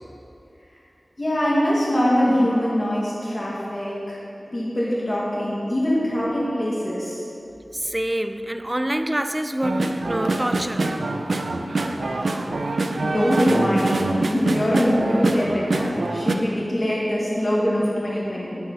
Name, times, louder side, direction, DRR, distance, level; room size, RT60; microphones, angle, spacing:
voice 1, 1.2-4.2 4.5-7.2 12.5-12.6 13.0-18.6, equal, 40° left, 1.9 m, -23 dB
voice 2, 7.7-11.0, right 1 dB, 20° right, 0.5 m, -26 dB
sound 1, 9.6-16.3, right 2 dB, 85° right, 0.6 m, -24 dB
8.9 x 8.2 x 5.4 m
wide cardioid pair, 65°, 0 cm